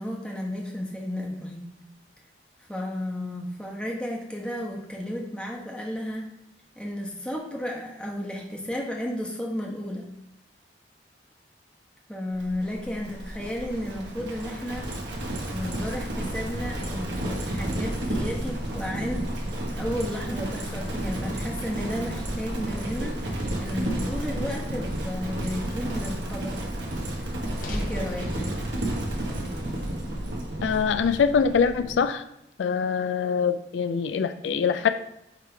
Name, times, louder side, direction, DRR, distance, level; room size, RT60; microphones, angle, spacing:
voice 1, 0.0-1.7 2.7-6.3 6.8-10.1 12.1-14.9 15.5-19.3 19.8-26.7 27.7-28.3, left 1 dB, 5° left, -2 dB, 1.0 m, -33 dB
Livestock farm animals working animals, 12.4-32.0, right 1 dB, 80° right, 1.2 m, -32 dB
sound 1, 27.6-31.8, equal, 45° left, 0.8 m, -40 dB
voice 2, 30.6-32.2 32.6-34.9, left 6 dB, 85° left, 10 dB, 0.4 m, -24 dB
9.6 x 3.2 x 3.3 m, 0.82 s
head